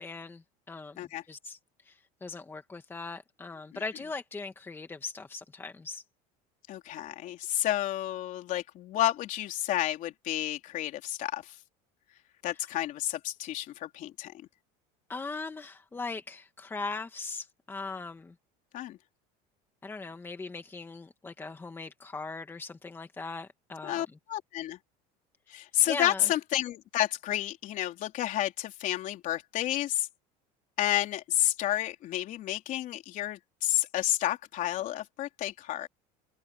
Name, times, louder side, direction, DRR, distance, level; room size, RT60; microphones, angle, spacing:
voice 1, 0.0-1.6 1.8-6.0 15.1-18.3 19.8-24.0 25.8-26.3, left 3 dB, 15° left, 1.6 m, -39 dB
voice 2, 6.7-11.6 12.4-14.3 18.7-19.0 23.8-24.8 25.5-30.1 30.8-35.9, left 13 dB, 50° left, 3.6 m, -30 dB
cardioid pair, 145°, 17 cm